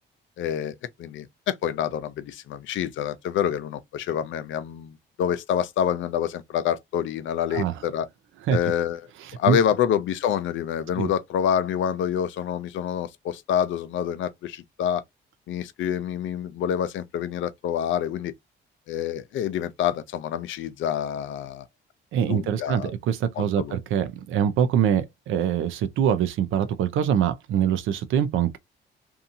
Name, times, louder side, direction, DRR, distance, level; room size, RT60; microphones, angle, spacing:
voice 1, 0.4-8.1 8.5-9.0 9.3-15.0 15.5-18.3 18.9-21.6 22.3-22.9 23.4-23.8, left 9 dB, 75° left, 0.5 m, -27 dB
voice 2, 9.2-9.6 11.0-11.1 22.1-28.6, right 9 dB, 80° right, 0.6 m, -24 dB
2.7 x 2.4 x 2.6 m
cardioid pair, 90°, 20 cm